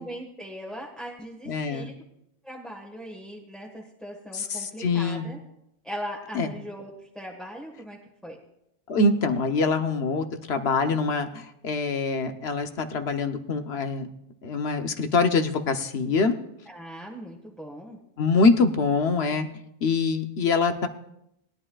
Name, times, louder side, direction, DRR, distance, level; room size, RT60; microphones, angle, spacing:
voice 1, 0.0-2.0 2.4-5.4 5.8-8.4 16.6-18.0, equal, ahead, -3 dB, 1.4 m, -39 dB
voice 2, 1.5-1.9 4.3-5.3 6.3-6.5 8.9-14.1 14.4-16.3 18.2-19.5 19.8-20.9, left 4 dB, 80° left, 7 dB, 1.2 m, -24 dB
20.5 x 11.0 x 2.3 m, 0.81 s
omnidirectional pair, 1.1 m